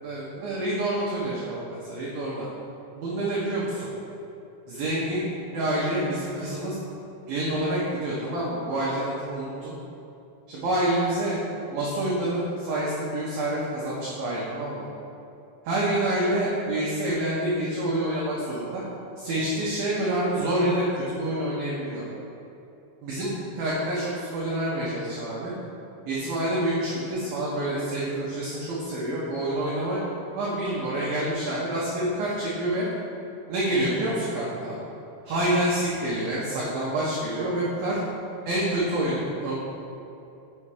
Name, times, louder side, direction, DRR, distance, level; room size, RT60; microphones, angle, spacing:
voice 1, 0.0-2.5 3.0-3.9 4.7-6.8 7.3-9.7 10.5-11.4 11.7-14.9 15.6-18.8 19.2-22.0 23.0-25.5 26.1-30.0 30.4-32.9 33.5-34.8 35.3-38.0 38.5-39.5, right 1 dB, 70° right, -7 dB, 2.3 m, -27 dB
6.3 x 5.7 x 4.9 m, 2.7 s
omnidirectional pair, 5.4 m